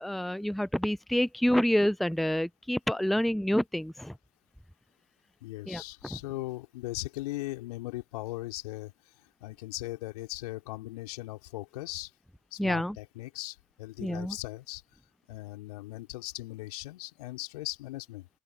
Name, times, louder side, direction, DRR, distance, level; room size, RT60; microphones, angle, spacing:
voice 1, 0.0-4.1 5.7-5.8 12.6-13.0 14.0-14.3, equal, ahead, 0.8 m, -28 dB
voice 2, 5.4-12.1 12.5-14.8 15.3-18.3, left 18 dB, 75° left, 4.3 m, -39 dB
open air
figure-of-eight pair, 50°, 20 cm